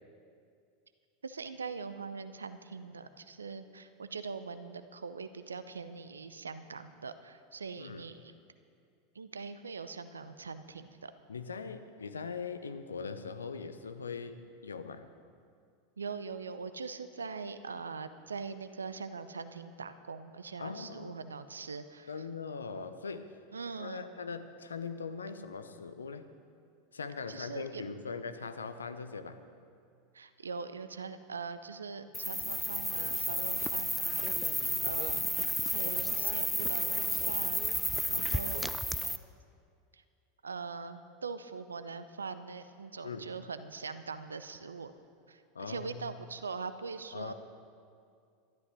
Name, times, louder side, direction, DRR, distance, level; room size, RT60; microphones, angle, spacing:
voice 1, 1.2-8.3 9.1-11.1 16.0-22.2 23.5-24.1 27.3-27.8 30.1-35.2 35.7-37.7 38.1-38.7 39.9-40.0 40.4-44.9 45.3-47.3, right 5 dB, 80° right, 11 dB, 0.6 m, -42 dB
voice 2, 11.3-15.1 20.6-21.2 22.1-23.3 23.8-26.3 26.9-29.4 34.5-34.8 38.1-38.3 43.0-43.3 45.5-46.1 47.1-47.3, left 5 dB, 80° left, 10 dB, 0.7 m, -41 dB
sound 1, 32.1-39.2, left 1 dB, ahead, 0.5 m, -32 dB
13.0 x 12.0 x 6.2 m, 2.3 s
figure-of-eight pair, 85°, 0 cm